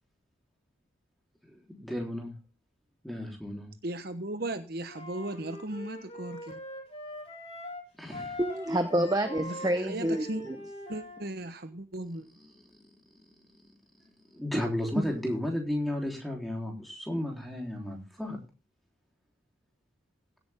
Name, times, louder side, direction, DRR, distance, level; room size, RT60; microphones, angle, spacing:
voice 1, 1.4-2.3 3.0-3.7 8.0-8.4 12.4-12.9 14.3-18.4, left 1 dB, ahead, 0 dB, 3.6 m, -34 dB
voice 2, 3.8-6.6 9.4-10.4 10.9-12.3, right 1 dB, 50° right, 9 dB, 1.0 m, -37 dB
Wind instrument woodwind instrument, 4.9-7.8 8.1-11.3, equal, 30° left, 4.2 m, -42 dB
voice 3, 8.4-10.6, right 1 dB, 20° right, 8 dB, 0.9 m, -28 dB
16.5 x 8.8 x 3.6 m, 0.32 s
head